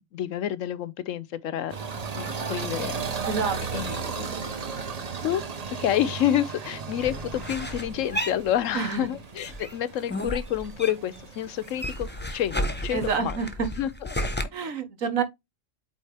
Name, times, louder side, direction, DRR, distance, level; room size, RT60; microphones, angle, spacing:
voice 1, 0.1-1.8 2.2-3.0 3.7-4.3 5.2-5.4 5.8-13.4 13.8-14.3, left 11 dB, 80° left, 1.0 m, -29 dB
sound 1, 1.7-13.2, right 5 dB, 35° right, 0.8 m, -36 dB
voice 2, 3.3-3.6 4.3-4.5 8.7-9.1 12.9-13.7 14.5-15.2, right 5 dB, 90° right, 1.7 m, -28 dB
sound 2, 7.0-9.1 9.4-11.2 11.5-14.4, equal, 10° left, 0.8 m, -32 dB
8.4 x 3.5 x 3.3 m
omnidirectional pair, 1.4 m